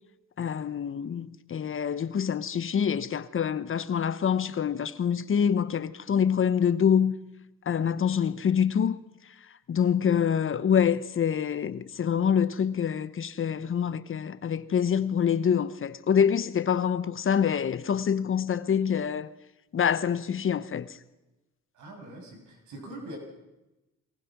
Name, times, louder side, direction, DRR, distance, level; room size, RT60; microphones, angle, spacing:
voice 1, 0.4-7.1 7.7-9.0 9.7-19.3 19.7-21.0, left 8 dB, 45° left, 1.0 m, -26 dB
voice 2, 21.7-23.2, right 1 dB, 80° right, 7.1 m, -43 dB
22.5 x 20.0 x 6.1 m
cardioid pair, 90°, 30 cm